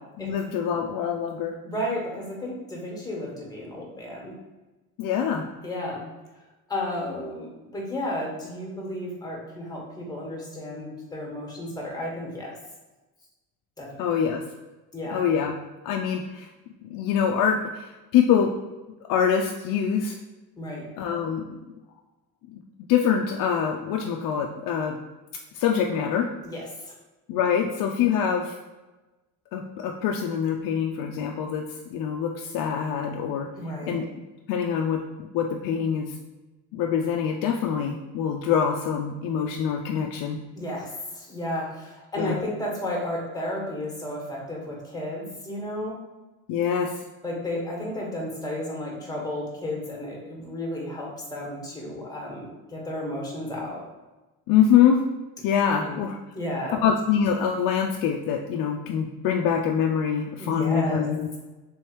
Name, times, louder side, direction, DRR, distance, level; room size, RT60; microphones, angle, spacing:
voice 1, 0.2-1.5 5.0-5.4 14.0-14.4 15.1-15.5 15.8-16.5 16.8-18.5 19.1-20.2 21.0-21.4 22.9-25.0 25.5-26.3 27.3-28.6 29.5-31.6 31.9-33.5 33.9-34.1 34.5-35.0 35.3-36.2 36.7-40.4 42.2-42.4 46.5-46.9 54.5-55.0 55.4-56.2 56.7-61.4, left 8 dB, 60° left, 1 dB, 0.5 m, -24 dB
voice 2, 1.6-4.3 5.6-6.1 6.7-12.5 13.8-14.0 14.9-15.2 20.6-20.9 26.4-26.9 33.6-34.0 40.5-46.0 47.2-53.8 55.8-56.0 56.3-56.8 60.4-61.0, left 1 dB, 10° left, -3 dB, 1.4 m, -33 dB
3.4 x 3.1 x 3.1 m, 1.1 s
supercardioid pair, 85°, 39 cm